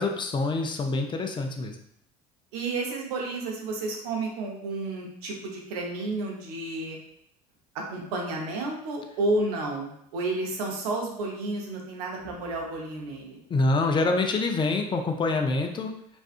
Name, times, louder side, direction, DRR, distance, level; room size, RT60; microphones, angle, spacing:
voice 1, 0.0-1.8 13.5-15.9, left 3 dB, 25° left, 4 dB, 0.4 m, -26 dB
voice 2, 2.5-7.0 7.7-13.4, right 2 dB, 80° right, 0 dB, 0.7 m, -31 dB
2.5 x 2.3 x 2.4 m, 0.73 s
hypercardioid pair, 80°, 19 cm